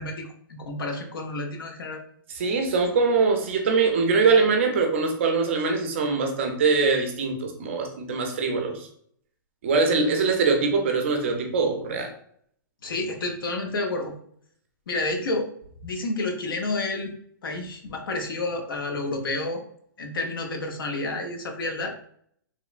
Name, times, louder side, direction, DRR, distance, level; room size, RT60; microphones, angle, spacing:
voice 1, 0.0-2.0 12.8-14.1 14.9-15.5 15.8-17.1 17.4-19.6 20.0-22.0, left 2 dB, 85° left, 4 dB, 0.7 m, -30 dB
voice 2, 2.3-8.9 9.6-12.1, right 4 dB, 35° right, 3 dB, 0.4 m, -23 dB
3.0 x 2.0 x 2.3 m, 0.63 s
hypercardioid pair, 175°, 11 cm